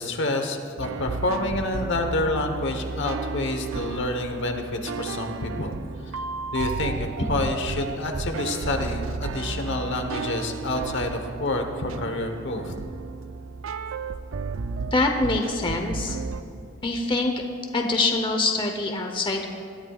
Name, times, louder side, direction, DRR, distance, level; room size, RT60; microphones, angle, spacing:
voice 1, 0.0-5.7 6.5-12.7, left 2 dB, 60° left, 5 dB, 1.1 m, -28 dB
sound 1, 0.8-16.4, right 4 dB, 70° right, 0.5 m, -33 dB
voice 2, 14.9-16.2 16.8-17.3 17.7-19.5, left 2 dB, 25° left, 3 dB, 0.8 m, -24 dB
20.5 x 13.0 x 2.4 m, 2.4 s
head